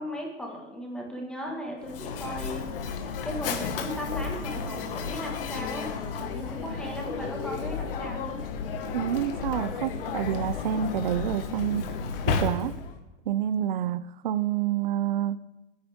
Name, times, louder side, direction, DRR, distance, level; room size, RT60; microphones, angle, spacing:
voice 1, 0.0-2.7 3.2-5.9 6.2-8.4, equal, ahead, 1.6 m, -36 dB
Mechanisms, 1.8-13.0, left 5 dB, 45° left, 1.8 m, -33 dB
voice 2, 8.9-11.9 12.3-12.7 13.3-15.4, right 11 dB, 40° right, 0.5 m, -28 dB
28.0 x 10.5 x 3.6 m
hypercardioid pair, 170°, 38 cm